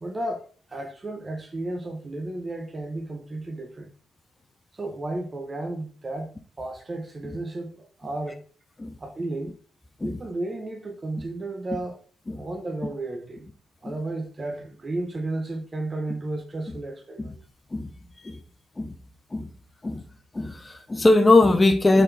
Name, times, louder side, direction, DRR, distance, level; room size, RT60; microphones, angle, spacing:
voice 1, 0.0-3.9 4.7-8.4 9.0-9.5 10.0-12.0 12.3-13.5 13.8-17.3, right 2 dB, 25° right, 0.7 m, -33 dB
voice 2, 20.3-22.0, left 2 dB, 20° left, 0.6 m, -21 dB
4.2 x 3.8 x 3.3 m
cardioid pair, 90°, 0 cm